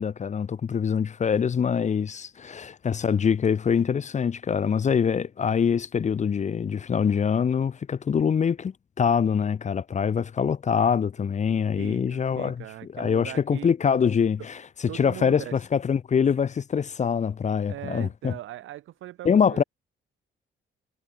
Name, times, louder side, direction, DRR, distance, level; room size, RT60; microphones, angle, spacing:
voice 1, 0.0-12.6 12.9-14.6 14.9-18.3 19.2-19.6, left 7 dB, 35° left, 0.7 m, -24 dB
voice 2, 11.8-13.7 14.9-15.6 17.7-19.6, right 14 dB, 85° right, 4.3 m, -40 dB
cardioid pair, 90°, 20 cm